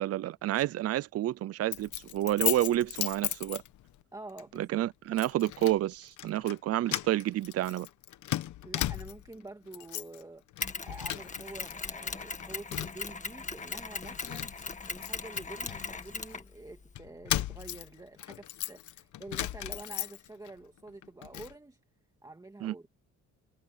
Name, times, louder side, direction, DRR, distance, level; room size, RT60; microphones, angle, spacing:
voice 1, 0.0-3.6 4.6-7.9 22.6-22.7, right 14 dB, 55° right, 0.5 m, -29 dB
Keys jangling, 1.7-4.0 4.4-4.6 5.2-5.8 6.1-6.6 6.9-9.3 9.7-10.2 10.5-11.7 12.0-13.1 13.6-13.7 14.0-16.4 16.9-20.5 20.9-21.5, left 14 dB, 80° left, 1.2 m, -36 dB
voice 2, 4.1-5.2 8.6-10.4 10.8-14.5 14.9-21.8 22.2-22.9, right 2 dB, 10° right, 2.0 m, -47 dB
Mechanisms, 10.6-16.9, left 4 dB, 25° left, 1.8 m, -39 dB
cardioid pair, 115°, 30 cm